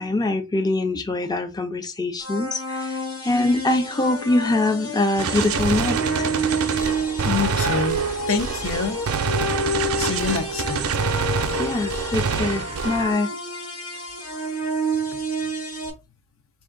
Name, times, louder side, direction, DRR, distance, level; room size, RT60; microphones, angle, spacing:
voice 1, 0.0-3.0 3.2-6.3 11.6-13.3, left 2 dB, 20° left, 0.4 m, -23 dB
sound 1, 2.2-15.9, right 1 dB, 85° left, 1.1 m, -29 dB
Gunshot gunfire, 5.2-13.2, right 5 dB, 75° right, 0.5 m, -26 dB
voice 2, 7.2-8.0 8.3-9.0 10.0-10.8, left 5 dB, 65° left, 0.6 m, -26 dB
3.6 x 2.5 x 3.7 m
head